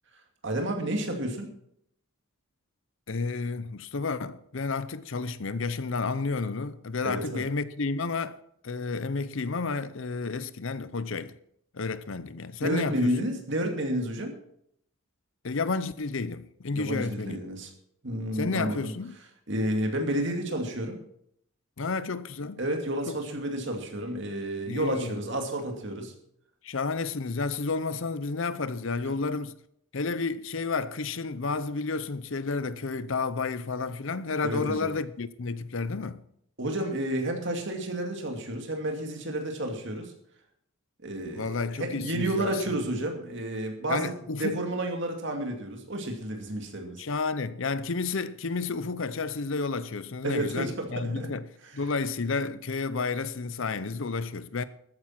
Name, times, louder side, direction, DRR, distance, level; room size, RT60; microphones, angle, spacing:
voice 1, 0.4-1.5 7.0-7.4 12.6-14.4 16.7-17.7 18.0-18.9 19.5-21.0 22.6-26.1 29.1-29.2 34.4-34.9 36.6-40.1 41.0-44.1 44.4-47.0 50.2-51.3 51.6-51.8, right 1 dB, 55° right, 2.5 m, -31 dB
voice 2, 3.1-8.4 8.6-11.3 11.7-13.3 15.4-17.4 18.3-19.2 21.8-22.6 23.1-23.2 24.7-25.1 26.6-29.6 29.9-36.2 41.3-42.6 43.9-44.6 47.0-51.5 51.7-54.6, left 4 dB, 65° left, 0.7 m, -31 dB
13.5 x 9.4 x 5.9 m
head